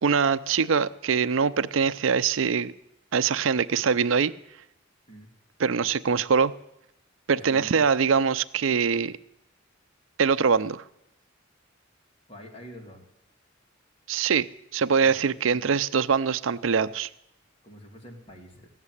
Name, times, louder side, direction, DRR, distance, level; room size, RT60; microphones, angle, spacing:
voice 1, 0.0-2.7 3.1-4.3 5.6-6.5 7.3-9.1 10.2-10.8 14.1-14.5 14.7-17.1, right 6 dB, 80° right, 0.5 m, -23 dB
voice 2, 7.3-7.9 12.3-13.0 17.6-18.7, equal, 30° left, 2.9 m, -46 dB
16.0 x 7.4 x 9.7 m
head